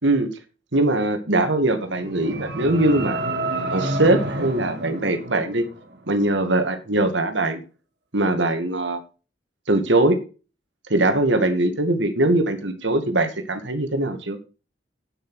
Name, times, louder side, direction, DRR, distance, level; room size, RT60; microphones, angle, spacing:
voice 1, 0.7-3.2 3.7-5.7 6.1-7.6 8.1-9.0 9.7-10.2 10.9-14.4, right 2 dB, 90° right, 8 dB, 2.2 m, -21 dB
sound 1, 1.8-6.0, right 2 dB, 60° right, 2.2 m, -29 dB
9.6 x 7.3 x 6.5 m, 0.34 s
head